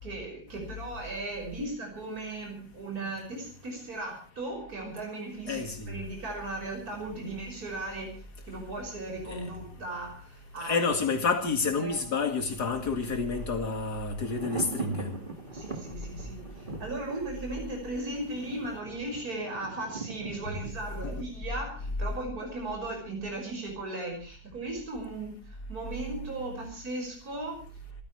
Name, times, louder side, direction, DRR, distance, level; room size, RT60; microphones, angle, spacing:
voice 1, 0.0-10.8 11.8-12.0 15.5-27.6, right 2 dB, 65° right, 6.4 m, -37 dB
voice 2, 5.5-5.9 9.3-9.5 10.6-15.1, left 4 dB, 80° left, 2.7 m, -29 dB
Thunder, 11.5-22.4 22.7-22.8, right 4 dB, 30° right, 2.0 m, -42 dB
27.5 x 15.0 x 3.2 m
omnidirectional pair, 1.7 m